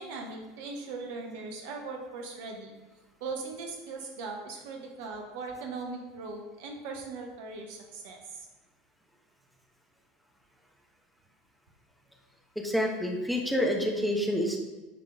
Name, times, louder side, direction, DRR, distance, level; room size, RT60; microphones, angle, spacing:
voice 1, 0.0-2.7 3.2-8.5, right 3 dB, 55° right, 2 dB, 0.9 m, -39 dB
voice 2, 12.5-14.6, equal, ahead, 0 dB, 1.2 m, -28 dB
10.5 x 3.7 x 3.6 m, 1.2 s
figure-of-eight pair, 75°, 0 cm